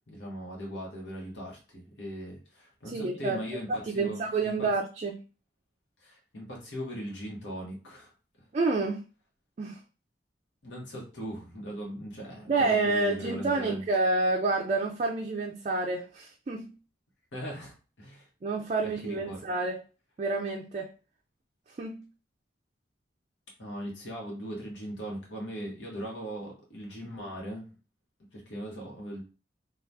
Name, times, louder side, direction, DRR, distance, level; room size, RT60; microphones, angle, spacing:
voice 1, 0.1-4.7 6.0-8.1 8.4-8.5 10.6-13.8 17.3-18.3 18.8-19.4 23.6-27.7 28.3-29.2, equal, 85° left, 1.0 m, -39 dB
voice 2, 2.9-3.4 3.7-5.2 8.5-9.0 9.6-9.8 12.5-16.7 18.4-19.8 20.2-20.9 21.7-22.0, right 3 dB, 40° right, 0.3 m, -29 dB
2.7 x 2.3 x 3.3 m
head